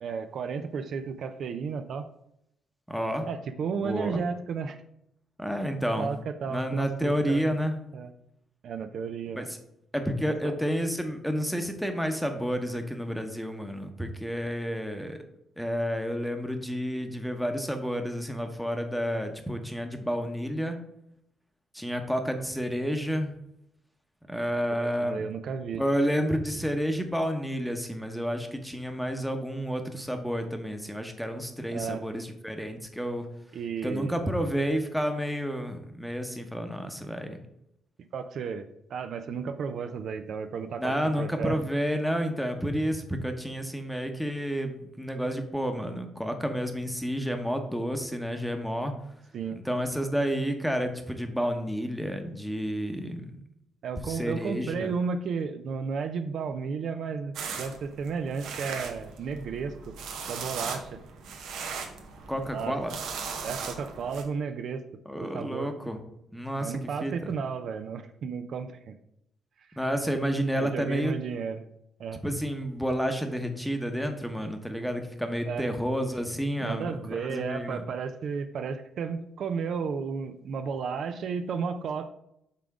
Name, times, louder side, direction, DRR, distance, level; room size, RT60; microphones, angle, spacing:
voice 1, 0.0-2.1 3.3-4.8 6.0-7.6 7.9-8.1 8.6-9.5 24.8-25.8 31.7-32.0 33.5-34.1 38.1-41.6 49.3-49.6 53.8-59.9 60.3-60.9 62.5-62.8 63.4-64.8 65.3-65.7 66.6-69.0 69.7-69.8 70.6-71.7 72.0-72.2 75.5-75.7 76.6-82.1, right 5 dB, 65° right, 9 dB, 0.5 m, -33 dB
voice 2, 2.9-3.3 3.8-4.2 5.4-6.1 6.5-7.8 9.3-9.6 9.9-15.2 15.6-20.8 21.7-23.3 24.3-25.2 25.8-33.3 33.8-37.4 40.8-48.9 49.6-53.4 54.1-54.9 62.3-62.9 65.1-66.0 66.3-67.3 69.8-71.1 72.2-77.8, equal, ahead, 5 dB, 0.9 m, -30 dB
sound 1, 57.3-64.2, right 5 dB, 80° right, 0.9 m, -38 dB
5.7 x 3.6 x 4.8 m, 0.78 s
cardioid pair, 90°, 0 cm